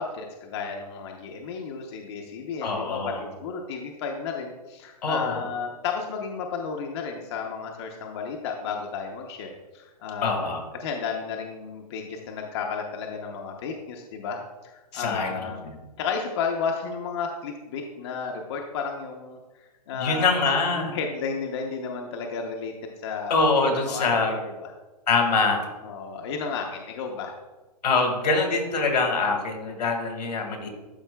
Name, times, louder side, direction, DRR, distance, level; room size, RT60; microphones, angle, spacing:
voice 1, 0.0-10.5 10.8-24.7 25.8-27.4, left 5 dB, 40° left, 1 dB, 0.7 m, -33 dB
voice 2, 2.6-3.2 5.0-5.4 10.2-10.6 14.9-15.8 19.9-21.0 23.3-24.3 25.1-25.7 27.8-30.7, left 3 dB, 85° left, 3 dB, 1.7 m, -24 dB
12.0 x 4.5 x 2.2 m, 1.2 s
hypercardioid pair, 160°, 21 cm